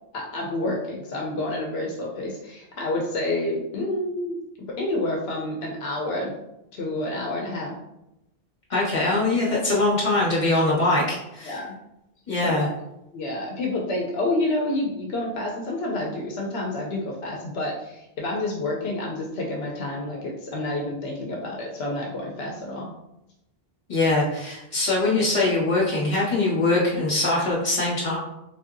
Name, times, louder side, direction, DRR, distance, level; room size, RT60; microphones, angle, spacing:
voice 1, 0.1-4.4 4.7-6.4 6.7-7.7 11.4-11.7 12.4-12.7 13.1-22.9, left 1 dB, 85° left, -2 dB, 0.9 m, -29 dB
voice 2, 8.7-11.6 12.3-12.7 23.9-28.2, left 2 dB, 45° left, -5 dB, 1.3 m, -22 dB
3.8 x 2.6 x 2.5 m, 0.86 s
omnidirectional pair, 1.0 m